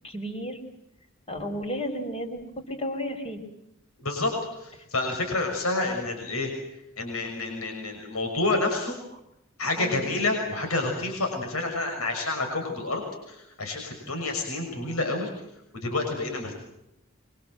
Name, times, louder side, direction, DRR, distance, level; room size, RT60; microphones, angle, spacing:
voice 1, 0.0-0.6 1.3-3.4 9.8-10.1, equal, 30° left, 5 dB, 4.6 m, -33 dB
voice 2, 4.0-4.3 4.6-6.5 7.0-9.0 9.6-13.0 13.3-15.3 15.7-16.6, left 2 dB, 85° left, 3 dB, 6.2 m, -28 dB
25.5 x 24.0 x 7.8 m, 0.85 s
head